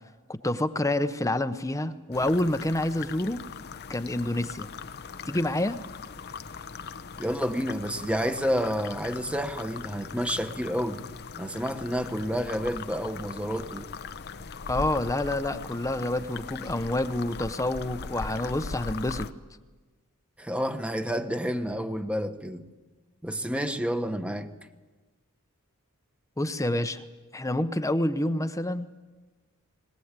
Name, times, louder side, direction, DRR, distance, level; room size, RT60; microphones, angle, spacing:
voice 1, 0.3-3.4 3.9-4.7 5.3-5.8 14.7-19.3 26.4-27.0 27.3-28.9, left 1 dB, 15° left, 0.8 m, -28 dB
sound 1, 2.1-19.3, left 5 dB, 50° left, 0.8 m, -40 dB
voice 2, 7.2-11.0 11.4-13.9 20.4-22.7 23.2-24.5, equal, 5° right, 1.2 m, -29 dB
21.0 x 20.5 x 8.2 m
head